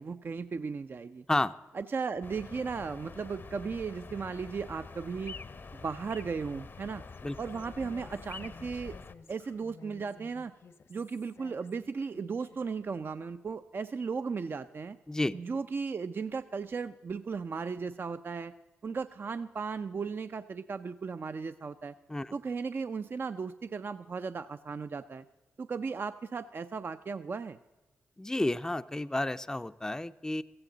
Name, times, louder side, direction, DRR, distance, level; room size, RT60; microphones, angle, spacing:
voice 1, 0.0-1.2 1.7-5.4 5.7-7.0 7.4-9.0 9.3-10.5 10.9-15.0 15.3-18.5 18.8-21.9 22.3-25.2 25.6-27.6, right 5 dB, 45° right, 11 dB, 0.5 m, -36 dB
sound 1, 2.2-9.2, left 4 dB, 50° left, 0.7 m, -46 dB
Human voice, 7.5-12.7, left 5 dB, 70° left, 1.0 m, -54 dB
voice 2, 28.2-30.4, left 1 dB, 10° left, 10 dB, 0.5 m, -31 dB
15.5 x 15.0 x 3.9 m, 1.2 s
cardioid pair, 55°, 5 cm